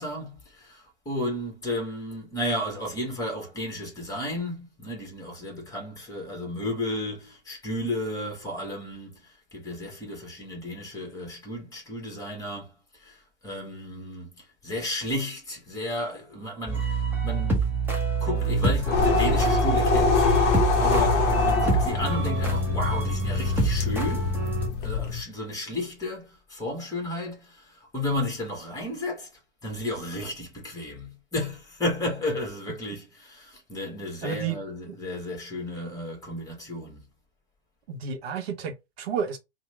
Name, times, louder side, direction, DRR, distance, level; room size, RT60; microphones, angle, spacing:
voice 1, 0.0-17.6 18.2-20.3 20.8-24.3 24.8-29.3 29.6-37.0, left 1 dB, 10° left, 1.3 m, -33 dB
sound 1, 16.7-24.7, right 3 dB, 5° right, 0.6 m, -26 dB
sound 2, 18.4-25.2, left 5 dB, 30° left, 0.7 m, -25 dB
voice 2, 34.2-34.6 37.9-39.4, right 7 dB, 55° right, 0.8 m, -31 dB
2.9 x 2.1 x 3.1 m
hypercardioid pair, 120°, 35 cm